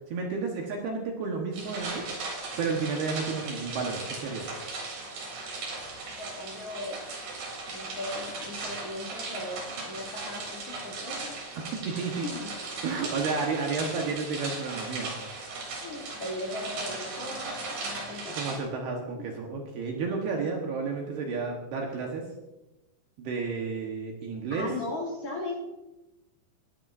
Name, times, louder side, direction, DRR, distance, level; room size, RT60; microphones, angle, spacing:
voice 1, 0.1-2.1 2.6-4.5 11.6-12.3 12.8-15.1 18.3-22.3 23.2-24.7, right 4 dB, 65° right, 1 dB, 2.7 m, -31 dB
sound 1, 1.5-18.6, right 3 dB, 50° right, 4.9 m, -37 dB
voice 2, 6.1-7.0 7.7-11.3 11.9-12.6 15.8-18.4 24.5-25.6, left 2 dB, 40° left, -2 dB, 2.7 m, -38 dB
20.5 x 12.5 x 2.6 m, 1.0 s
omnidirectional pair, 5.9 m